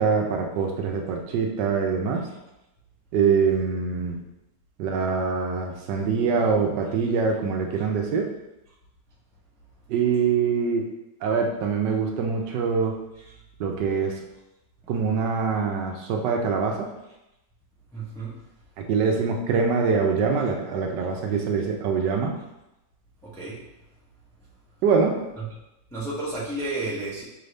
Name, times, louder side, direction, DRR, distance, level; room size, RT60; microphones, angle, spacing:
voice 1, 0.0-2.2 3.1-4.2 4.8-8.3 9.9-10.9 11.2-13.0 13.6-14.2 14.9-16.9 18.9-22.3 24.8-25.2, right 5 dB, 75° right, 2 dB, 1.2 m, -24 dB
voice 2, 17.9-18.4 23.2-23.6 25.4-25.5 25.9-27.2, right 2 dB, 5° left, -7 dB, 0.4 m, -32 dB
5.4 x 2.6 x 3.3 m, 0.91 s
omnidirectional pair, 2.0 m